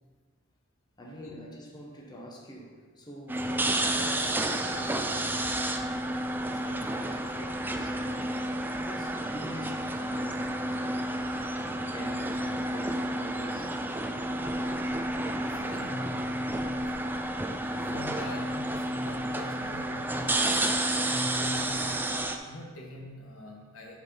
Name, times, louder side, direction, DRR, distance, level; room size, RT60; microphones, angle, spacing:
voice 1, 1.0-5.7 6.5-11.0 11.4-13.8, equal, 20° left, -1 dB, 0.9 m, -45 dB
sound 1, 3.3-22.4, right 1 dB, 10° right, 0.4 m, -31 dB
voice 2, 15.4-16.8 17.3-17.4 17.9-22.2 22.5-24.0, left 1 dB, 85° left, -1 dB, 1.3 m, -42 dB
6.2 x 5.1 x 5.5 m, 1.5 s
head